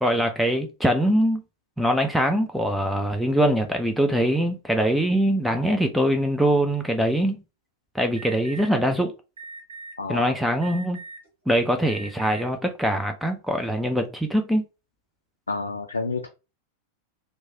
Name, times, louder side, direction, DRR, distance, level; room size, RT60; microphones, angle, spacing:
voice 1, 0.0-1.4 1.8-7.4 7.9-9.1 10.1-11.0 11.5-14.6, equal, ahead, 0.4 m, -23 dB
Alarm, 8.2-8.7 9.4-9.9 10.6-11.3 11.8-12.4, right 3 dB, 70° right, 1.2 m, -40 dB
voice 2, 10.0-10.3 15.5-16.3, left 3 dB, 75° left, 0.3 m, -29 dB
3.0 x 2.1 x 2.6 m
figure-of-eight pair, 90°, 0 cm